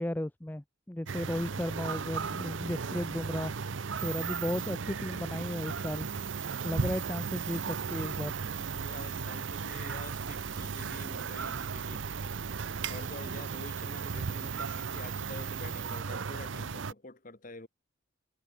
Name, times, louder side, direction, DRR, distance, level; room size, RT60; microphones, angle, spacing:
voice 1, 0.0-3.5 4.0-6.1 6.6-8.3, left 1 dB, 10° left, 0.5 m, -35 dB
sound 1, 1.1-16.9, right 5 dB, 70° right, 0.7 m, -36 dB
sound 2, 4.0-16.0, right 11 dB, 35° right, 1.3 m, -43 dB
voice 2, 8.7-12.1 12.9-17.7, left 2 dB, 40° left, 1.8 m, -47 dB
head